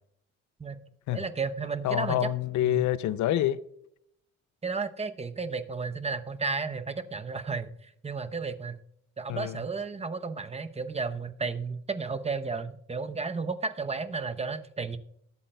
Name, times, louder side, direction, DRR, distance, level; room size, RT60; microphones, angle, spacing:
voice 1, 1.1-2.3 2.6-2.9 4.6-8.8 9.2-15.0, right 4 dB, 20° right, 0.7 m, -33 dB
voice 2, 1.8-3.6 9.3-9.6, left 13 dB, 70° left, 0.5 m, -27 dB
20.0 x 8.5 x 2.2 m
cardioid pair, 90°, 30 cm